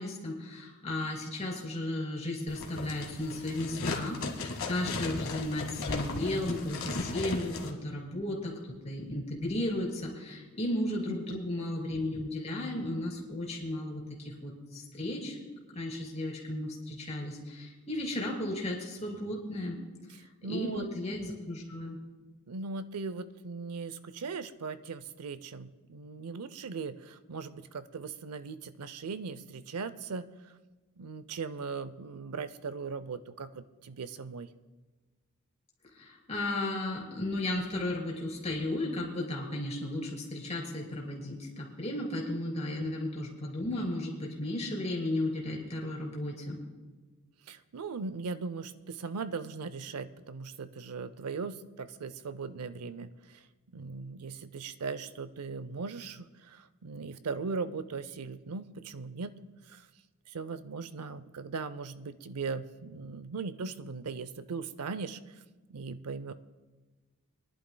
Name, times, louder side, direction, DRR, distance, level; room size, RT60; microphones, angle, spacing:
voice 1, 0.0-8.5 8.8-15.4 15.7-19.8 20.5-22.0 35.9-46.6, left 1 dB, 30° left, -1 dB, 3.0 m, -34 dB
sound 1, 2.5-7.7, left 3 dB, 60° left, 1.6 m, -36 dB
voice 2, 11.1-11.4 20.4-20.8 22.5-30.3 31.0-34.5 42.8-42.9 47.5-53.4 53.7-59.4 59.7-59.8 60.3-65.2 65.7-66.3, right 4 dB, 85° right, 14 dB, 0.6 m, -39 dB
25.0 x 11.0 x 2.2 m, 1.3 s
head